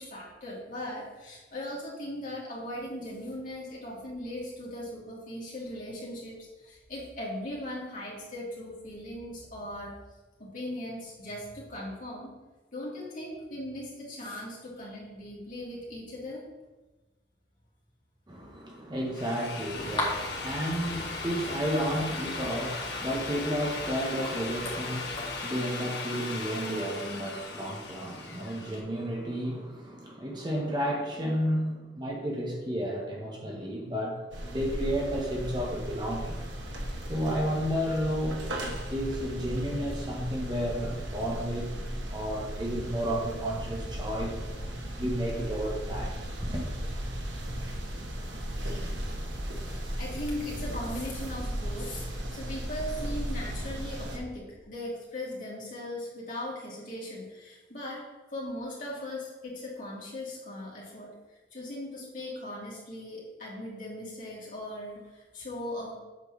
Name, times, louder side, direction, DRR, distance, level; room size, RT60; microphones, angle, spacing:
voice 1, 0.0-9.9 10.4-12.3 12.7-16.4 49.6-58.0 58.3-61.1 61.5-65.9, left 1 dB, 45° left, -5 dB, 2.9 m, -39 dB
voice 2, 18.3-34.2 34.5-36.4 37.1-38.4 38.9-41.7 42.1-44.4 45.0-46.2 46.4-46.7, equal, 25° right, -1 dB, 1.1 m, -32 dB
Drill, 19.0-28.8, left 3 dB, 70° left, 1.6 m, -38 dB
sound 1, 19.6-25.4, left 1 dB, 25° left, 2.0 m, -39 dB
sound 2, 34.3-54.2, equal, 85° right, 1.5 m, -36 dB
8.3 x 4.6 x 6.1 m, 1.2 s
head